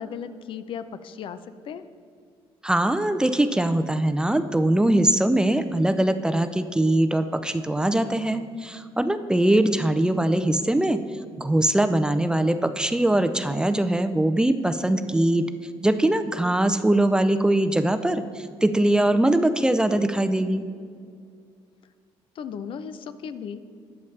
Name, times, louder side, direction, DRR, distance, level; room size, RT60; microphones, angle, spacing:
voice 1, 0.0-1.8 22.3-23.6, left 7 dB, 55° left, 12 dB, 0.6 m, -36 dB
voice 2, 2.6-11.0 11.4-15.4 15.8-20.6, right 1 dB, 5° right, 10 dB, 0.4 m, -22 dB
19.5 x 7.0 x 3.3 m, 2.2 s
cardioid pair, 125°, 11 cm